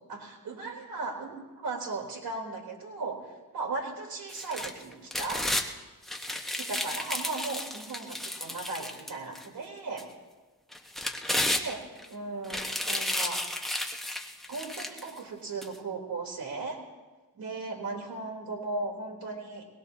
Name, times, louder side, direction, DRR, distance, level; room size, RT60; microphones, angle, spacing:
voice 1, 0.1-5.5 6.5-10.1 11.4-13.4 14.5-16.8 17.4-19.7, right 3 dB, 75° right, -2 dB, 3.5 m, -37 dB
sound 1, 4.3-5.7 6.1-9.5 10.0-10.1 10.7-12.1 12.4-15.1 15.6-15.7, left 1 dB, ahead, 1.2 m, -32 dB
22.5 x 19.5 x 2.8 m, 1.2 s
cardioid pair, 95°, 36 cm